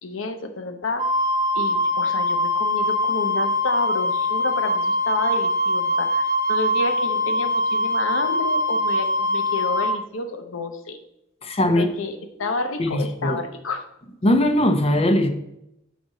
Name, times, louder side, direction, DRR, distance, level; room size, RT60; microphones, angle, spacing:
voice 1, 0.0-1.1 1.5-11.0 11.7-13.8, left 3 dB, 75° left, 7 dB, 0.9 m, -30 dB
Wind instrument woodwind instrument, 1.0-10.0, left 1 dB, 20° right, 1.0 m, -22 dB
voice 2, 11.4-11.9 12.8-13.4 14.2-15.3, left 1 dB, 30° left, 7 dB, 0.7 m, -20 dB
6.4 x 5.1 x 4.1 m, 0.82 s
head